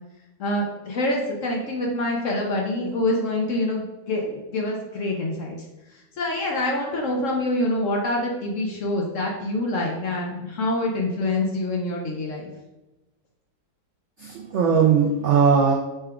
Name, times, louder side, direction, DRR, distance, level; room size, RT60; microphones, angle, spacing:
voice 1, 0.4-5.6 5.9-12.5, left 1 dB, 60° left, -1 dB, 0.9 m, -26 dB
voice 2, 14.2-15.7, right 6 dB, 85° right, -1 dB, 0.6 m, -19 dB
5.7 x 2.3 x 3.5 m, 1.0 s
omnidirectional pair, 1.8 m